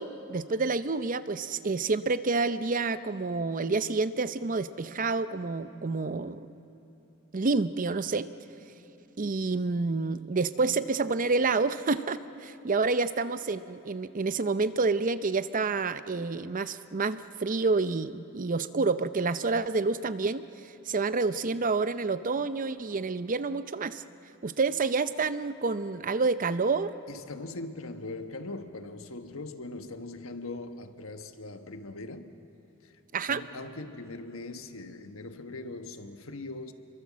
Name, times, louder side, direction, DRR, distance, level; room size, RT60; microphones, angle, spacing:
voice 1, 0.0-6.5 7.3-8.3 9.2-20.4 20.9-24.0 24.4-27.0 33.1-33.4, right 3 dB, 40° right, 0.6 m, -28 dB
voice 2, 27.1-32.3 32.8-33.0 33.3-36.7, left 2 dB, 75° left, 1.3 m, -40 dB
28.5 x 23.0 x 7.4 m
head